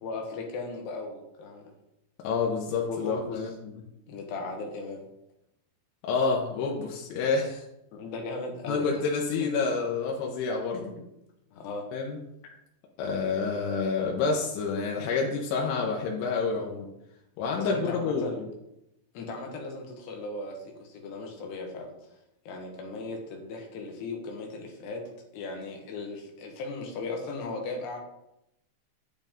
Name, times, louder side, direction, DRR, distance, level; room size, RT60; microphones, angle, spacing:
voice 1, 0.0-1.7 2.9-3.4 4.1-5.1 7.9-9.0 10.7-11.0 11.5-11.9 17.6-18.5 19.1-21.9 22.5-25.0 25.3-28.0, left 3 dB, 70° left, 2 dB, 3.2 m, -37 dB
voice 2, 2.2-3.8 6.0-7.6 8.7-10.8 11.9-12.2 13.0-16.9 17.4-18.5, left 4 dB, 85° left, -1 dB, 3.5 m, -28 dB
8.8 x 7.9 x 3.7 m, 0.84 s
omnidirectional pair, 5.3 m